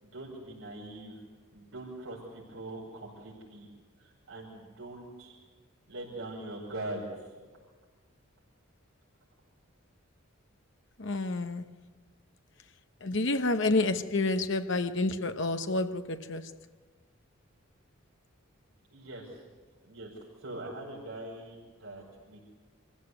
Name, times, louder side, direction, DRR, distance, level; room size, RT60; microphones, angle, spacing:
voice 1, 0.0-1.1 1.5-3.7 4.0-5.3 5.9-7.3 18.9-19.4 19.9-20.1 20.4-22.4, right 1 dB, 80° right, 5.6 m, -42 dB
voice 2, 11.0-11.6 13.0-16.5, left 2 dB, 60° left, 1.0 m, -29 dB
26.0 x 15.5 x 8.2 m
head